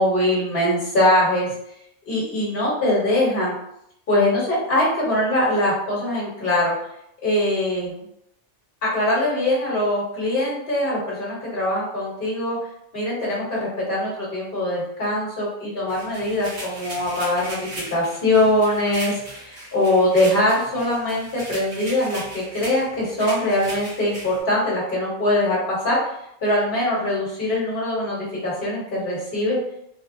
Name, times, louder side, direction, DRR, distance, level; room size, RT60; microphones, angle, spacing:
voice 1, 0.0-1.5 2.1-3.5 4.1-6.7 7.2-7.9 8.8-12.6 12.9-17.6 17.9-26.0 26.4-29.6, left 1 dB, 55° left, -6 dB, 1.5 m, -22 dB
sound 1, 15.9-24.4, right 1 dB, 80° right, 1.4 m, -37 dB
3.5 x 2.2 x 2.5 m, 0.76 s
omnidirectional pair, 1.2 m